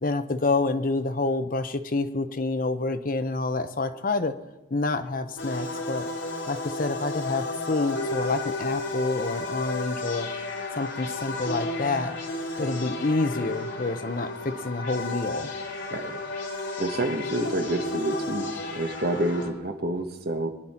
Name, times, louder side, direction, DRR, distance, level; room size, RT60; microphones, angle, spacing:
voice 1, 0.0-4.3 4.7-6.1 6.5-10.3 10.7-12.1 12.6-15.5, left 3 dB, 45° left, 10 dB, 0.7 m, -28 dB
sound 1, 5.4-19.5, left 2 dB, 80° left, 2.7 m, -33 dB
voice 2, 16.8-18.5 18.7-20.5, right 1 dB, 55° right, 6 dB, 1.3 m, -28 dB
22.5 x 10.5 x 4.3 m, 1.0 s
head